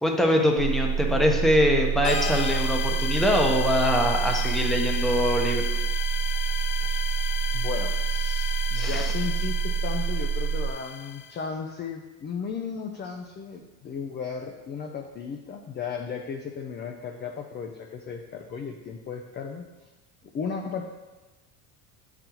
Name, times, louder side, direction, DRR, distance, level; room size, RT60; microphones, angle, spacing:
voice 1, 0.0-5.6 8.7-9.1, equal, ahead, 1 dB, 0.8 m, -23 dB
sound 1, 0.6-10.7, right 7 dB, 60° right, 0.6 m, -27 dB
sound 2, 2.0-11.4, left 7 dB, 65° left, 0.8 m, -34 dB
voice 2, 6.8-7.1 7.5-19.7 20.3-20.8, left 6 dB, 25° left, 3 dB, 0.4 m, -35 dB
8.6 x 3.9 x 2.9 m, 1.2 s
supercardioid pair, 95°, 46 cm